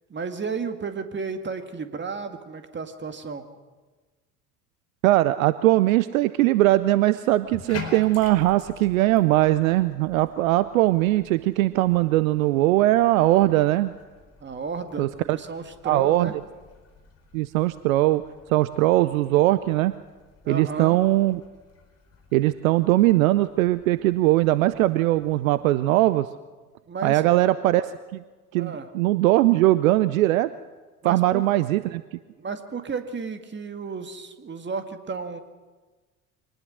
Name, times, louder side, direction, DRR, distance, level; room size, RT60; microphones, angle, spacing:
voice 1, 0.1-3.5 14.4-15.1 15.3-16.4 18.9-19.3 20.4-21.0 26.9-27.2 28.6-28.9 31.0-31.5 32.4-35.4, right 5 dB, 25° right, 8 dB, 2.1 m, -33 dB
voice 2, 5.0-13.9 15.0-15.4 15.8-16.3 17.3-18.2 18.5-19.9 20.5-21.4 22.3-26.3 27.0-27.8 28.1-28.2 28.5-30.5 31.0-32.0, right 16 dB, 65° right, 15 dB, 0.7 m, -20 dB
Bathtub (filling or washing), 7.4-25.8, left 5 dB, 35° left, 4.4 m, -47 dB
24.0 x 19.5 x 6.3 m, 1.3 s
figure-of-eight pair, 65°, 45 cm